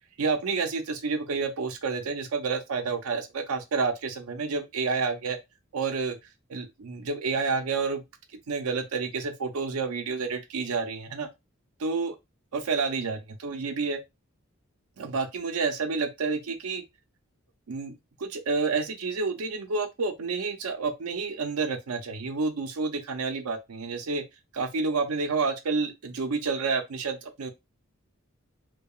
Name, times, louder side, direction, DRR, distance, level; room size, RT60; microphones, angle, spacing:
voice 1, 0.2-5.4 5.7-6.2 6.5-8.0 8.5-11.3 11.8-12.1 12.5-14.0 15.0-16.8 17.7-17.9 18.2-24.2 24.5-27.5, right 4 dB, 90° right, 0.6 m, -29 dB
2.7 x 2.3 x 2.3 m
head